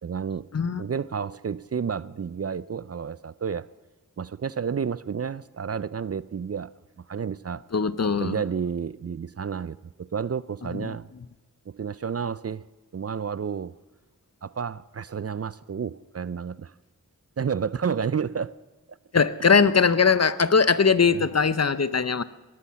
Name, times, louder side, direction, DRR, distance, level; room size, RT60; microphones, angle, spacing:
voice 1, 0.0-0.5 0.8-3.7 4.2-6.7 7.0-7.6 8.2-11.1 11.7-12.6 12.9-13.7 14.4-16.7 17.4-18.6 21.1-21.2, right 6 dB, 45° right, 18 dB, 0.4 m, -30 dB
voice 2, 7.7-8.4 10.8-11.0 19.1-22.2, left 5 dB, 45° left, 15 dB, 0.7 m, -21 dB
19.0 x 12.5 x 5.8 m, 1.2 s
wide cardioid pair, 45°, 35 cm